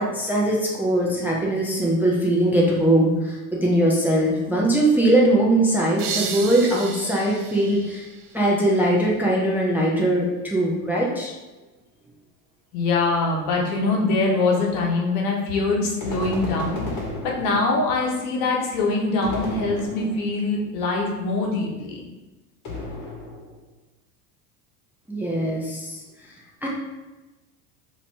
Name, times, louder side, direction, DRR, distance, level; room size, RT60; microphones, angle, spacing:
voice 1, 0.0-8.1 8.3-11.3 25.1-26.0 26.6-26.7, right 1 dB, 5° right, -4 dB, 0.4 m, -21 dB
sound 1, 6.0-8.8, right 6 dB, 85° right, 0.5 m, -33 dB
voice 2, 12.7-16.8 17.2-22.0, left 3 dB, 75° left, -1 dB, 1.0 m, -23 dB
sound 2, 16.0-18.0 19.2-20.4 22.6-23.6, left 2 dB, 45° left, 1.1 m, -33 dB
2.7 x 2.6 x 3.3 m, 1.1 s
hypercardioid pair, 95°, 45 cm